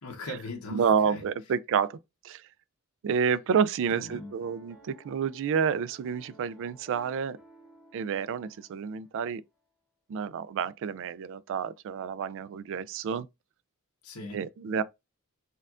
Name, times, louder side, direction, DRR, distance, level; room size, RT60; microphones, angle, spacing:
voice 1, 0.0-1.2 3.9-4.3 14.0-14.4, left 2 dB, 90° left, 1.1 m, -40 dB
voice 2, 0.7-2.0 2.2-2.4 3.0-7.4 7.9-9.4 10.1-13.3 14.3-14.8, right 6 dB, 60° right, 0.3 m, -29 dB
Piano, 3.9-9.2, right 2 dB, 5° right, 0.9 m, -57 dB
4.4 x 3.6 x 2.4 m
head